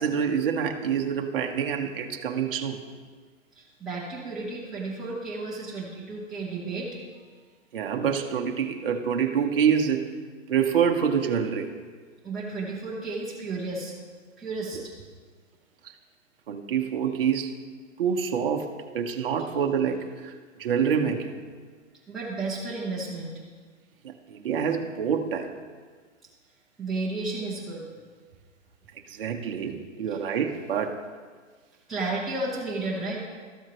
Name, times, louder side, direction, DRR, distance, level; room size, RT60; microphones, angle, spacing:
voice 1, 0.0-2.8 7.7-10.1 10.5-11.7 14.7-14.8 16.5-17.6 18.0-20.3 20.6-21.3 24.0-25.5 29.1-31.0, right 7 dB, 45° right, 3 dB, 0.8 m, -26 dB
voice 2, 3.6-7.0 12.2-13.9 14.4-14.9 22.1-23.3 26.8-27.8 30.1-30.2 31.9-33.3, right 3 dB, ahead, -10 dB, 0.7 m, -32 dB
13.0 x 7.8 x 3.0 m, 1.5 s
hypercardioid pair, 175°, 39 cm